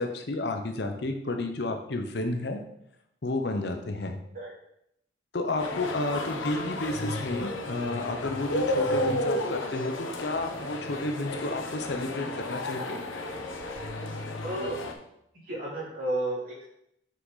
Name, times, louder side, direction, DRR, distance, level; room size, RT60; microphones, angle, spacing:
voice 1, 0.0-2.6 3.2-4.2 5.3-13.0, left 2 dB, 55° left, 6 dB, 0.7 m, -31 dB
sound 1, 5.6-14.9, left 1 dB, 85° left, 0.9 m, -32 dB
voice 2, 14.0-14.8 15.4-16.7, right 1 dB, 45° right, -6 dB, 2.9 m, -33 dB
5.8 x 5.8 x 4.0 m, 0.78 s
head